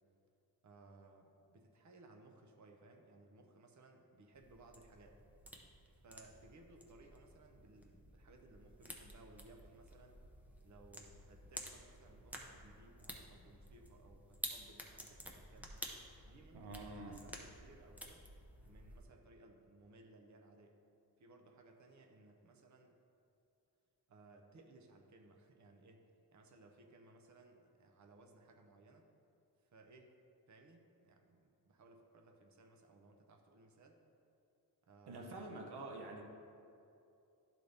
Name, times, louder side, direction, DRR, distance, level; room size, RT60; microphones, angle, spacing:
voice 1, 0.6-5.2 5.9-10.2 10.6-15.8 16.1-18.2 18.6-20.8 21.2-23.0 24.1-29.0 29.6-30.1 30.5-34.0 34.8-35.7, right 2 dB, 50° right, 3 dB, 0.7 m, -62 dB
sound 1, 4.3-19.0, equal, 5° right, 0.6 m, -52 dB
voice 2, 16.5-17.2 35.1-36.2, right 2 dB, 80° right, 1 dB, 0.9 m, -47 dB
12.0 x 4.0 x 3.4 m, 2.7 s
wide cardioid pair, 135°, 39 cm